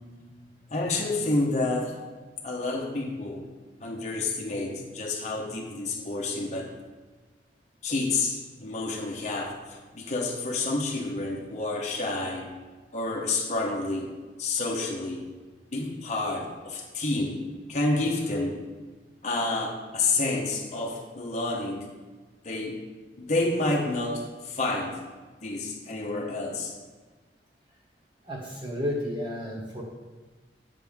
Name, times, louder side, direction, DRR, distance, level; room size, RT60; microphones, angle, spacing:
voice 1, 0.7-1.9 2.4-3.5 3.8-6.7 7.8-12.5 12.9-14.1 14.4-15.2 15.7-17.4 17.7-18.6 19.2-21.9 22.4-22.8 23.2-25.0 25.4-26.7, left 2 dB, 40° left, -1 dB, 0.9 m, -29 dB
voice 2, 28.2-29.8, left 1 dB, 30° right, -6 dB, 1.5 m, -32 dB
9.7 x 5.8 x 3.5 m, 1.3 s
head